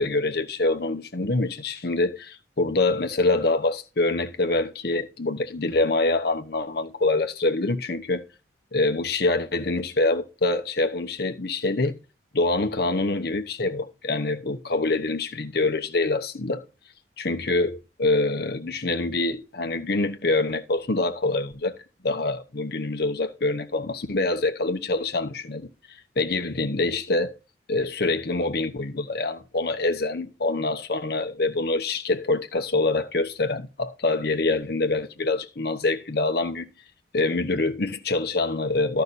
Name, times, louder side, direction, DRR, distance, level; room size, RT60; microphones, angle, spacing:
voice 1, 0.0-8.2 8.7-12.0 12.3-16.6 17.2-21.8 22.0-25.7 26.2-27.3 27.7-36.7 37.1-39.0, left 2 dB, 55° left, 0.9 m, -25 dB
12.5 x 5.8 x 4.1 m
head